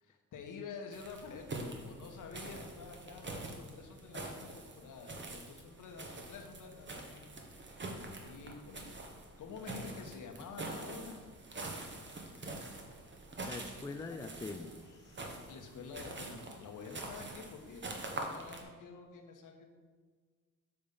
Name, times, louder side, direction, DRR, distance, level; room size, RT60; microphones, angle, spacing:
voice 1, 0.0-9.1 9.4-11.2 14.2-14.3 15.5-19.7, left 5 dB, 55° left, 3 dB, 1.1 m, -49 dB
sound 1, 0.9-18.6, right 2 dB, 30° right, 1.1 m, -45 dB
voice 2, 13.5-15.5, left 3 dB, 10° left, 6 dB, 0.3 m, -44 dB
6.8 x 3.5 x 5.3 m, 1.5 s
supercardioid pair, 70°, 37 cm